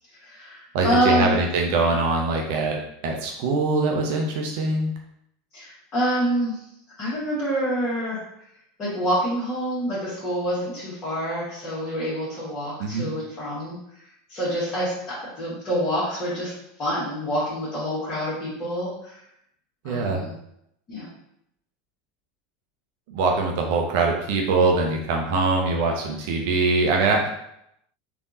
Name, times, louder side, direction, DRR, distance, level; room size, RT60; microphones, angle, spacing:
voice 1, 0.2-1.4 5.5-6.6 7.0-8.2 8.8-13.8 14.3-16.5 16.8-19.2 19.8-20.3 20.9-21.1, equal, 35° left, -11 dB, 1.4 m, -26 dB
voice 2, 0.7-2.8 3.0-4.9 12.8-13.1 19.8-20.2 23.1-27.3, right 3 dB, 55° right, 1 dB, 0.5 m, -23 dB
3.4 x 2.5 x 2.6 m, 0.77 s
figure-of-eight pair, 80°, 0 cm